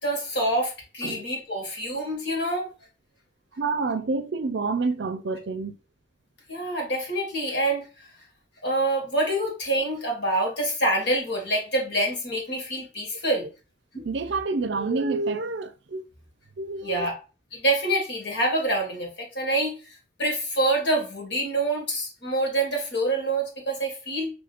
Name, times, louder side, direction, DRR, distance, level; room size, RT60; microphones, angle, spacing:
voice 1, 0.0-2.7 6.5-7.9 8.6-13.5 13.9-14.1 16.8-17.2 17.5-19.7 20.2-24.3, right 1 dB, 60° left, 1.9 m, -26 dB
voice 2, 3.5-5.8 14.0-16.0 16.6-17.1, right 3 dB, 60° right, 0.5 m, -28 dB
5.0 x 3.2 x 2.5 m
head